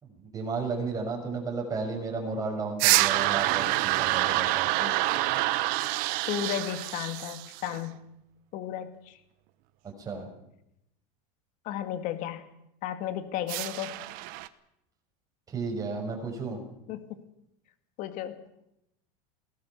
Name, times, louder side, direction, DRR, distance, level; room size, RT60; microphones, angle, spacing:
voice 1, 0.0-4.7 9.8-10.3 15.5-16.6, right 4 dB, 20° right, 1 dB, 6.3 m, -33 dB
sound 1, 2.8-7.8 13.5-14.5, right 18 dB, 50° right, 1.1 m, -27 dB
voice 2, 6.3-8.1 8.5-9.2 11.6-12.5 12.8-14.0 16.9-17.2 18.0-18.4, left 11 dB, 45° left, 9 dB, 2.1 m, -34 dB
21.5 x 18.5 x 7.1 m, 0.82 s
supercardioid pair, 155°, 18 cm